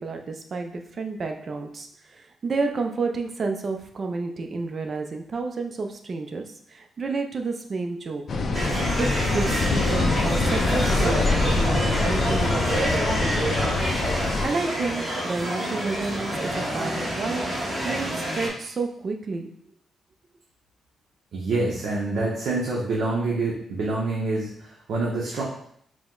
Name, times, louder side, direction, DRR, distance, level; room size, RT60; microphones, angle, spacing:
voice 1, 0.0-8.2 9.0-13.8 14.4-19.5, right 3 dB, 35° right, 4 dB, 0.4 m, -30 dB
sound 1, 8.3-14.5, left 3 dB, 45° left, 0.4 m, -24 dB
sound 2, 8.5-18.5, right 1 dB, 15° right, 1.0 m, -28 dB
voice 2, 21.3-25.4, right 2 dB, 65° right, -4 dB, 0.7 m, -26 dB
4.8 x 2.1 x 3.7 m, 0.68 s
wide cardioid pair, 155°, 0 cm